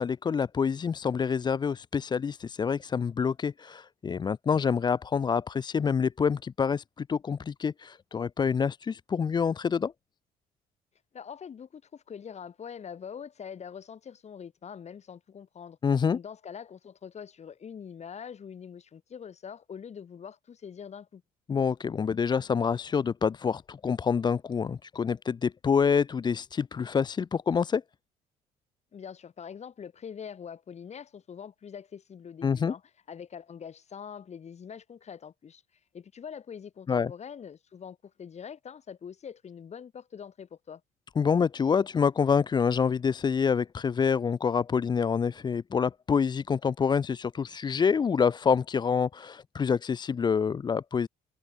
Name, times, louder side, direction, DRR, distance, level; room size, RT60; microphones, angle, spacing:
voice 1, 0.0-9.9 15.8-16.2 21.5-27.8 32.4-32.7 36.9-37.1 41.2-51.1, left 6 dB, 25° left, 0.5 m, -27 dB
voice 2, 11.1-15.8 16.1-21.2 28.9-32.8 33.1-35.6 35.9-40.8, left 7 dB, 40° left, 5.2 m, -44 dB
cardioid pair, 110°, 17 cm